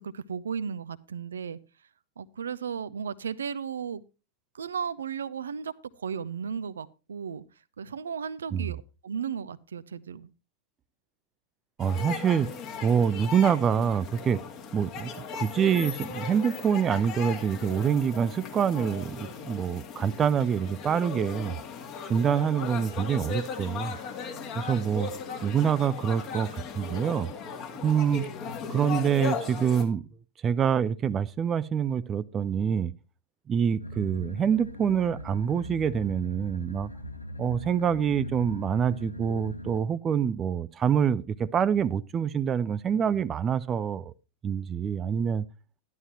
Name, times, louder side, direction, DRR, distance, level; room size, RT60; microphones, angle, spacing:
voice 1, 0.0-1.6 2.2-4.0 4.5-7.4 7.8-10.3, right 7 dB, 70° right, 0.5 m, -35 dB
sound 1, 11.8-29.8, left 6 dB, 35° left, 2.2 m, -37 dB
voice 2, 11.8-12.5 12.8-14.4 14.7-21.5 22.1-24.0 24.6-25.1 25.4-27.3 27.8-28.3 28.7-30.1 30.4-32.9 33.5-36.9 37.4-44.1 44.4-45.4, right 7 dB, 25° right, 0.5 m, -26 dB
sound 2, 33.8-39.8, left 1 dB, 85° left, 1.0 m, -40 dB
12.5 x 11.5 x 3.0 m
figure-of-eight pair, 90°, 0 cm